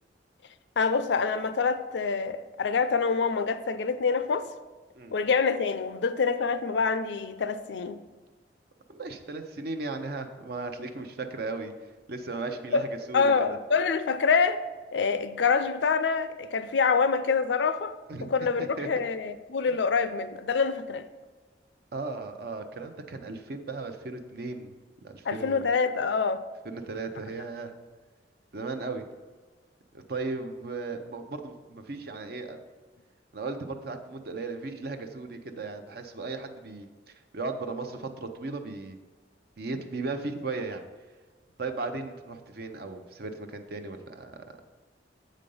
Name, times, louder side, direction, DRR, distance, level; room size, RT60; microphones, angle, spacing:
voice 1, 0.8-4.5 5.1-8.0 12.7-12.8 13.1-14.6 14.9-21.1 25.2-26.4, left 5 dB, 80° left, 12 dB, 0.5 m, -26 dB
voice 2, 8.9-11.7 12.1-13.3 18.1-18.9 21.9-24.7 25.0-25.7 26.6-27.7 28.5-29.0 29.9-32.6 33.3-39.0 39.6-40.9 41.6-44.4, right 3 dB, 60° right, 6 dB, 0.6 m, -36 dB
7.6 x 5.1 x 5.4 m, 1.3 s
head